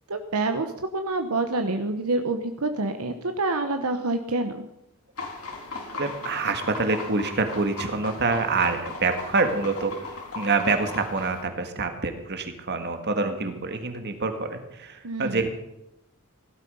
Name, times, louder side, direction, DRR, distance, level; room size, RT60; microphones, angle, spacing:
voice 1, 0.1-0.7 0.9-4.7 15.0-15.4, right 2 dB, 80° right, 6 dB, 1.1 m, -27 dB
sound 1, 5.2-11.4, left 3 dB, 80° left, 4.2 m, -37 dB
voice 2, 6.0-9.9 10.4-15.5, right 3 dB, 50° right, 6 dB, 1.9 m, -26 dB
17.0 x 12.5 x 5.6 m, 0.86 s
head